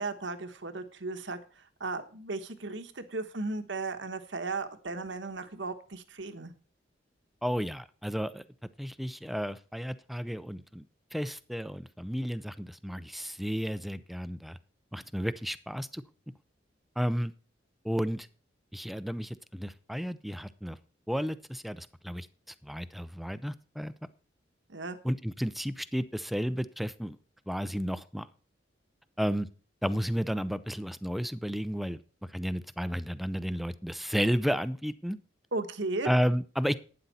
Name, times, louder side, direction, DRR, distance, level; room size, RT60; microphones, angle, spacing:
voice 1, 0.0-1.4 1.8-6.5 24.7-25.0 35.5-36.1, right 3 dB, 75° right, 8 dB, 1.3 m, -35 dB
voice 2, 7.4-8.4 8.8-10.8 11.1-14.6 14.9-16.0 17.0-17.3 17.8-18.3 18.7-20.8 21.1-22.3 22.6-23.9 25.0-27.2 27.5-28.3 29.2-29.5 29.8-32.0 32.3-35.2 36.0-36.7, equal, ahead, 14 dB, 0.5 m, -32 dB
12.0 x 9.6 x 4.2 m, 0.38 s
head